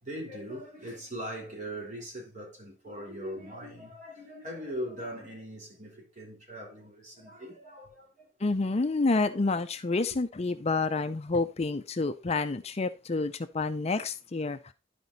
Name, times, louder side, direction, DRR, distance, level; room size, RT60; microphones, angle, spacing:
voice 1, 0.0-8.5, equal, 40° right, 3.7 m, -40 dB
voice 2, 8.4-14.7, left 3 dB, 35° left, 0.5 m, -29 dB
11.5 x 5.1 x 4.0 m
head